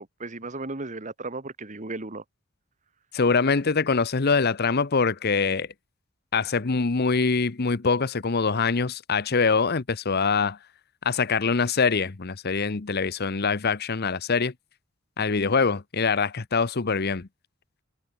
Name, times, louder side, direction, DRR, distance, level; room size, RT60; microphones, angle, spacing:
voice 1, 0.0-2.2, right 2 dB, 35° right, 1.6 m, -35 dB
voice 2, 3.1-5.7 6.3-10.6 11.0-14.5 15.2-17.3, left 4 dB, 50° left, 0.9 m, -24 dB
head